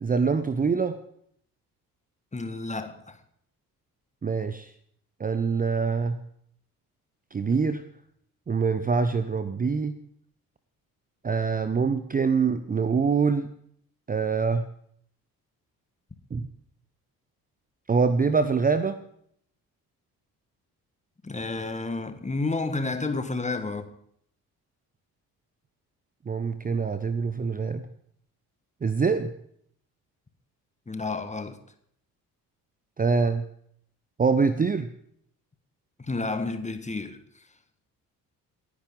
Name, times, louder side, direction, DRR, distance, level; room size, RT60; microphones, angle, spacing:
voice 1, 0.0-1.0 4.2-4.7 5.2-6.2 7.3-7.8 8.5-10.0 11.2-13.5 14.1-14.7 16.3-16.5 17.9-19.0 26.3-27.8 28.8-29.3 33.0-33.5 34.2-34.9, right 5 dB, 20° right, 12 dB, 0.8 m, -24 dB
voice 2, 2.3-3.2 21.2-23.9 30.9-31.6 36.0-37.4, left 3 dB, 15° left, 9 dB, 1.6 m, -31 dB
27.5 x 9.8 x 3.9 m, 0.68 s
figure-of-eight pair, 45°, 47 cm